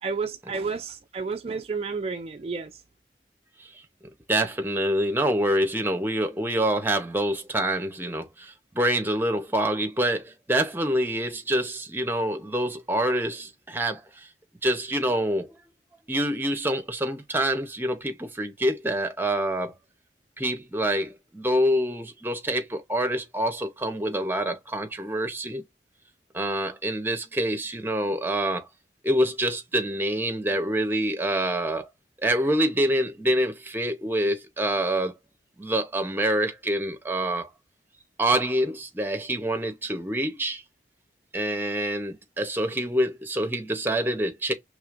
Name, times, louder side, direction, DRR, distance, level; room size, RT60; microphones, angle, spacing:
voice 1, 0.0-2.8, right 4 dB, 35° right, 0.3 m, -31 dB
voice 2, 4.3-14.3 14.6-15.5 16.1-19.7 20.4-25.6 26.3-28.7 29.0-31.9 32.2-35.1 35.6-37.5 38.2-40.6 41.3-44.5, right 1 dB, 10° right, 0.7 m, -26 dB
4.9 x 3.3 x 2.4 m
head